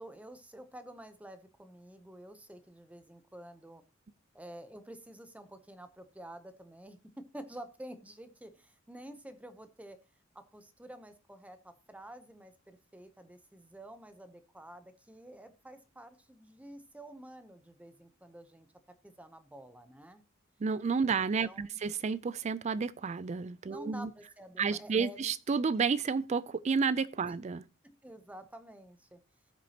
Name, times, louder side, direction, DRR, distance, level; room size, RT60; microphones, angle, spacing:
voice 1, 0.0-3.8 4.3-10.0 10.3-20.2 21.1-21.8 23.7-25.3 27.3-27.4 27.8-29.2, right 1 dB, 5° right, 0.7 m, -50 dB
voice 2, 20.6-24.1 24.6-27.6, right 5 dB, 35° right, 0.4 m, -31 dB
17.5 x 6.0 x 2.8 m
head